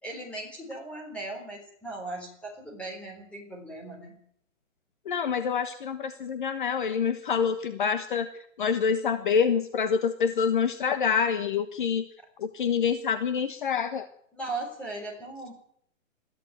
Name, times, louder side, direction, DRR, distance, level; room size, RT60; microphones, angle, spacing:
voice 1, 0.0-4.2 14.3-15.5, right 2 dB, 5° left, -1 dB, 3.8 m, -38 dB
voice 2, 5.1-12.0 12.4-14.0, left 6 dB, 40° left, 9 dB, 1.3 m, -26 dB
22.0 x 14.5 x 9.2 m, 0.67 s
hypercardioid pair, 175°, 40 cm